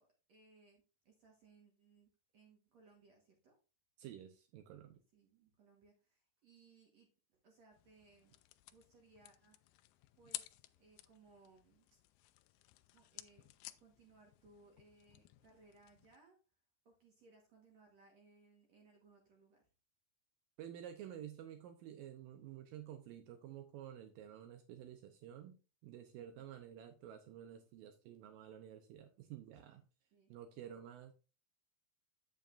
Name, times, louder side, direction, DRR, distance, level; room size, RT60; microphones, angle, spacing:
voice 1, 0.0-3.6 5.1-8.4 8.7-9.6 10.2-12.0 12.9-13.4 13.8-16.4 16.9-19.7 30.1-30.3, right 3 dB, 60° right, 1.9 m, -66 dB
voice 2, 4.0-5.0 20.6-29.8 30.3-31.1, right 10 dB, 85° right, 2.0 m, -51 dB
sound 1, 7.7-16.2, left 17 dB, 90° left, 2.1 m, -55 dB
9.0 x 8.2 x 2.5 m
omnidirectional pair, 4.9 m